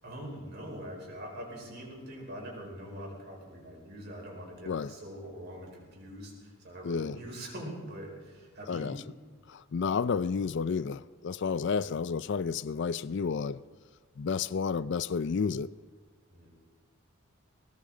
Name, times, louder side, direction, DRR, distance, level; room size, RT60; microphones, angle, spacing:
voice 1, 0.0-9.0 11.6-11.9 16.3-16.5, equal, 50° right, 4.9 m, -43 dB
voice 2, 6.8-7.2 8.7-9.0 9.5-13.6 14.2-15.7, left 5 dB, 55° left, 0.4 m, -31 dB
20.5 x 18.5 x 3.9 m
head